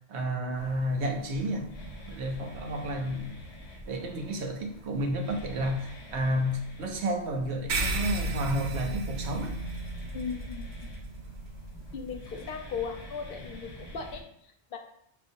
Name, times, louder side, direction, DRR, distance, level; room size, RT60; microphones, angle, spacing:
voice 1, 0.1-1.7 2.1-3.3 3.9-9.5, equal, 80° right, 4 dB, 0.9 m, -31 dB
sound 1, 0.5-14.2, equal, 85° left, 1.1 m, -47 dB
sound 2, 7.7-12.5, right 2 dB, 55° right, 0.6 m, -34 dB
voice 2, 10.1-10.9 11.9-14.8, left 6 dB, 65° left, 4 dB, 0.7 m, -38 dB
6.1 x 2.4 x 2.6 m, 0.72 s
omnidirectional pair, 1.1 m